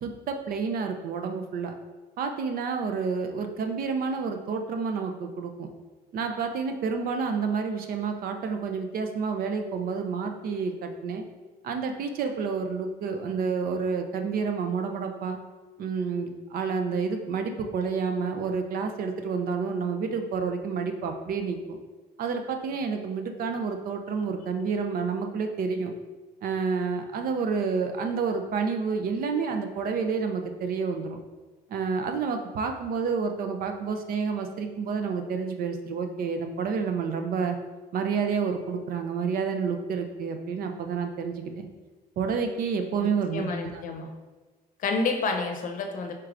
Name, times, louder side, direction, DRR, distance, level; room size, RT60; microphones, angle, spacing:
voice 1, 0.0-1.7 2.2-5.7 6.1-11.2 11.6-15.4 15.8-21.8 22.2-25.9 26.4-31.2 31.7-37.6 37.9-41.7 42.2-43.8, right 5 dB, 60° right, 6 dB, 0.5 m, -29 dB
voice 2, 43.3-44.1 44.8-46.1, left 3 dB, 50° left, 4 dB, 0.7 m, -29 dB
4.6 x 4.5 x 2.5 m, 1.2 s
cardioid pair, 110°, 17 cm